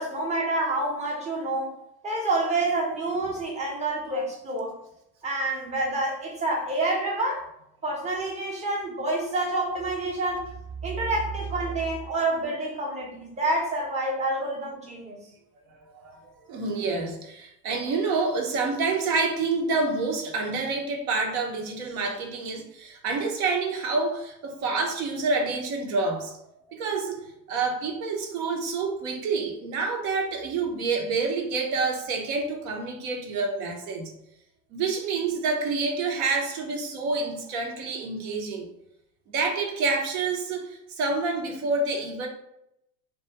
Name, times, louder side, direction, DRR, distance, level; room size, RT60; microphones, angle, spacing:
voice 1, 0.0-1.7 2.0-4.8 5.2-7.4 7.8-10.5 10.8-15.2, right 2 dB, 15° right, -1 dB, 0.7 m, -28 dB
voice 2, 15.9-26.3 26.7-34.1 34.7-38.7 39.3-42.3, right 4 dB, 55° right, 2 dB, 0.8 m, -28 dB
2.3 x 2.3 x 2.8 m, 0.81 s
hypercardioid pair, 85°, 49 cm